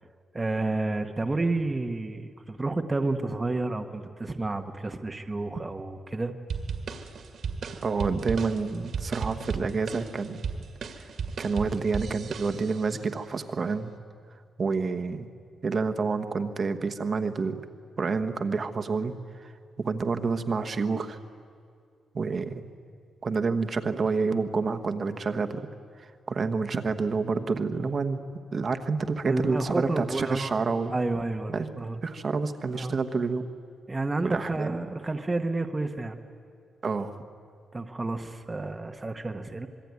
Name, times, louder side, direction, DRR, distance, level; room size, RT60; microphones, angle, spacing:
voice 1, 0.3-6.3 29.2-30.6 30.9-32.0 32.7-33.0 33.9-36.2 37.7-39.7, right 2 dB, 15° right, 7 dB, 1.0 m, -30 dB
sound 1, 6.5-12.9, right 5 dB, 55° right, 2.0 m, -35 dB
voice 2, 7.8-10.4 11.4-13.9 14.6-15.3 15.6-17.6 18.0-19.5 19.8-21.2 22.1-22.7 23.2-25.6 26.0-28.2 28.5-30.9 31.5-31.7 32.0-33.5 34.2-34.7 36.8-37.1, right 4 dB, 35° right, 7 dB, 1.2 m, -28 dB
26.0 x 22.0 x 9.5 m, 2.3 s
wide cardioid pair, 165°, 0 cm